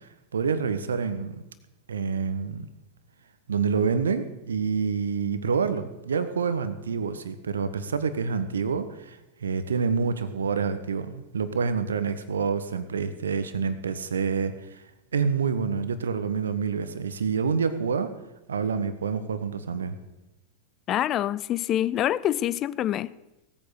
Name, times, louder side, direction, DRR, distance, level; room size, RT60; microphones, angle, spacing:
voice 1, 0.3-1.4 1.9-2.7 3.5-14.8 15.1-18.1 18.5-20.0, right 5 dB, 70° right, 1.2 m, -27 dB
voice 2, 20.9-23.1, left 12 dB, 30° left, 0.5 m, -26 dB
18.0 x 9.0 x 6.5 m
figure-of-eight pair, 90°, 0 cm